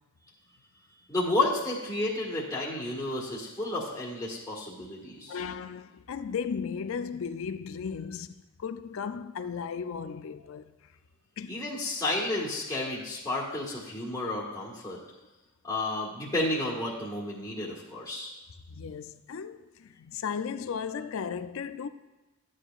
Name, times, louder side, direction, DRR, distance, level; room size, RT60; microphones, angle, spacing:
voice 1, 1.1-5.4 11.5-15.0 15.6-18.3, left 2 dB, 15° left, 1.6 m, -31 dB
voice 2, 5.3-10.7 11.4-11.6 18.7-21.9, left 6 dB, 65° left, 0.4 m, -36 dB
12.5 x 8.9 x 2.4 m
head